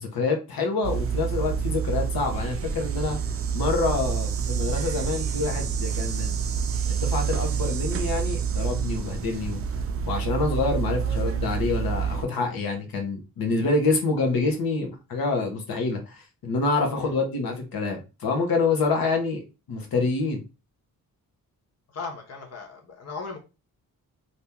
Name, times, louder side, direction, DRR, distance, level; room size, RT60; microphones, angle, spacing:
voice 1, 0.0-3.2 3.5-6.4 6.9-9.6 10.1-20.4, left 3 dB, 85° left, 3 dB, 1.1 m, -27 dB
sound 1, 0.8-12.2, right 7 dB, 40° right, 0.4 m, -27 dB
voice 2, 21.9-23.4, left 4 dB, 45° left, 3 dB, 0.7 m, -37 dB
2.9 x 2.6 x 3.5 m, 0.28 s
wide cardioid pair, 140°, 35 cm